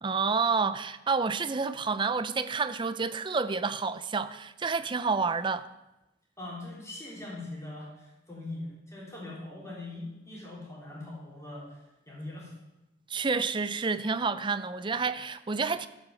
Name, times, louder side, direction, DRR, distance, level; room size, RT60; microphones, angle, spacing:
voice 1, 0.0-5.7 13.1-15.9, right 4 dB, 25° right, 0.5 m, -29 dB
voice 2, 6.4-11.8 12.1-12.5, left 2 dB, 15° left, 3.5 m, -41 dB
14.5 x 5.7 x 6.9 m
head